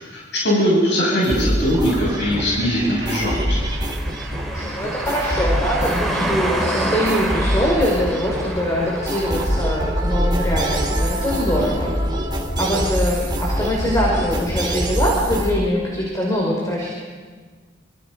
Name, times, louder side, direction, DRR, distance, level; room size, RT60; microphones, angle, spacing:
voice 1, 0.1-3.6, equal, 65° left, -4 dB, 7.7 m, -20 dB
sound 1, 1.2-15.5, equal, 25° right, 3.2 m, -24 dB
sound 2, 3.0-9.7, right 1 dB, ahead, 4.4 m, -28 dB
voice 2, 4.5-11.9 12.6-16.9, equal, 20° left, -3 dB, 5.4 m, -23 dB
29.0 x 27.0 x 5.5 m, 1.5 s
head